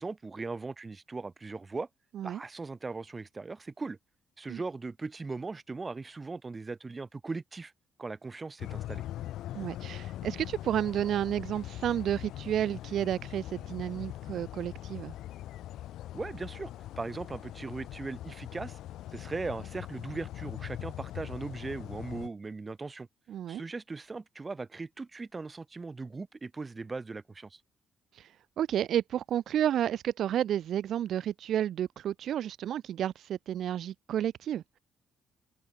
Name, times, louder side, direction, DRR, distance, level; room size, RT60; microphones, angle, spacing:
voice 1, 0.0-1.9 2.2-4.0 4.4-7.7 8.0-9.0 16.1-16.7 17.0-18.8 19.1-23.1 23.5-27.6, right 3 dB, 25° right, 3.5 m, -39 dB
sound 1, 8.6-22.3, left 13 dB, 85° left, 3.6 m, -41 dB
voice 2, 9.5-15.1 23.3-23.6 28.1-28.3 28.6-34.6, right 10 dB, 70° right, 1.1 m, -31 dB
cardioid pair, 90°, 0 cm